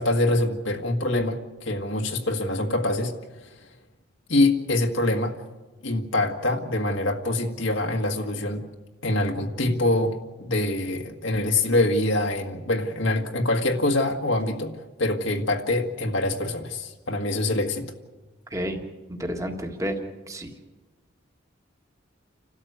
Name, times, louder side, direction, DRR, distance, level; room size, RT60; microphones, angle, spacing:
voice 1, 0.0-3.1 4.3-5.4 5.8-8.7 9.0-14.7 15.0-17.8, left 2 dB, 80° left, 1 dB, 1.8 m, -24 dB
voice 2, 19.2-20.0 20.3-20.5, equal, 15° right, 3 dB, 1.8 m, -30 dB
30.0 x 13.0 x 8.1 m, 1.2 s
head